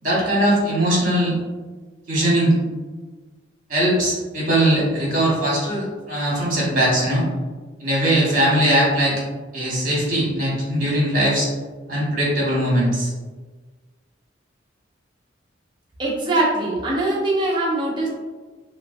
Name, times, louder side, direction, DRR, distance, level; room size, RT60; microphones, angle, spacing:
voice 1, 0.0-1.3 2.1-2.5 3.7-7.2 7.8-9.2 9.5-11.5 11.9-13.1, right 1 dB, 45° right, -5 dB, 1.2 m, -20 dB
voice 2, 16.0-18.1, right 2 dB, 25° right, -4 dB, 0.7 m, -22 dB
3.8 x 2.2 x 2.5 m, 1.3 s
head